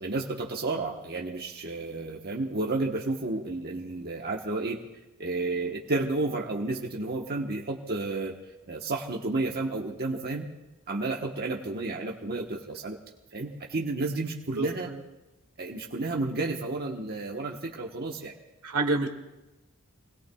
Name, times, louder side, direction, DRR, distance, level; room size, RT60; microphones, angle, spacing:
voice 1, 0.0-4.8 5.2-8.3 8.7-10.5 10.9-13.0 13.3-14.9 15.6-18.3, right 2 dB, 45° right, -1 dB, 1.3 m, -31 dB
voice 2, 14.6-15.0 18.6-19.1, right 3 dB, 80° right, 3 dB, 2.0 m, -28 dB
27.5 x 20.0 x 2.4 m, 1.0 s
head